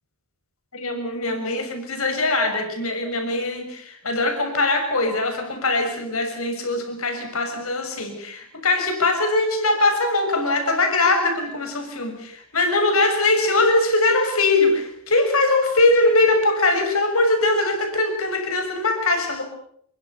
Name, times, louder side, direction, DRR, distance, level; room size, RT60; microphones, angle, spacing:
voice 1, 0.7-19.4, left 2 dB, 90° left, 6 dB, 6.7 m, -21 dB
28.0 x 23.0 x 6.9 m, 0.68 s
head